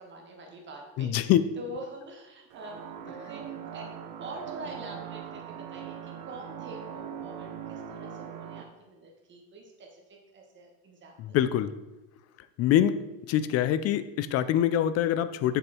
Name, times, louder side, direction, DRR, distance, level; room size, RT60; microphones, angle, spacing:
voice 1, 0.0-3.9 4.2-11.4, right 1 dB, 30° right, 1 dB, 1.7 m, -45 dB
voice 2, 1.0-1.4 11.2-11.7 12.6-13.0 13.3-15.6, left 11 dB, 40° left, 14 dB, 0.5 m, -24 dB
sound 1, 2.5-8.6, right 8 dB, 50° right, 1.0 m, -41 dB
7.3 x 6.8 x 4.4 m, 1.1 s
cardioid pair, 145°, 38 cm